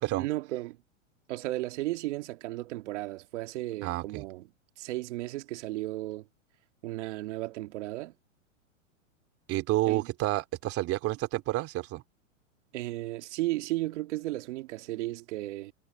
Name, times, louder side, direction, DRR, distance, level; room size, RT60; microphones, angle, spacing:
voice 1, 0.2-0.8 1.3-4.5 4.8-6.2 6.8-8.1 9.9-10.1 12.7-15.7, right 18 dB, 60° right, 2.3 m, -34 dB
voice 2, 3.8-4.2 9.5-12.0, right 17 dB, 35° right, 2.9 m, -29 dB
hypercardioid pair, 135°, 39 cm